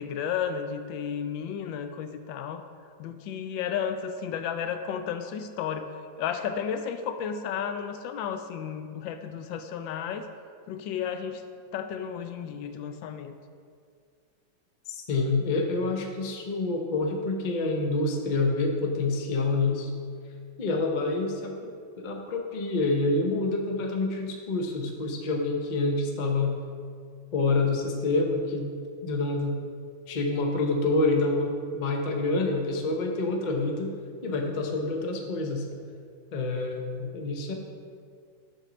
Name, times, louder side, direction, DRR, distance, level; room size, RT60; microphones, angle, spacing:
voice 1, 0.0-2.6 3.0-5.9 6.2-10.3 10.7-11.4 11.7-13.3, left 7 dB, 80° left, 8 dB, 1.3 m, -33 dB
voice 2, 14.9-19.9 20.6-21.7 22.0-26.5 27.3-28.8 29.0-29.6 30.1-34.0 34.2-35.6 36.3-37.5, left 3 dB, 65° left, 2 dB, 0.4 m, -27 dB
7.6 x 4.4 x 6.1 m, 2.2 s
omnidirectional pair, 2.1 m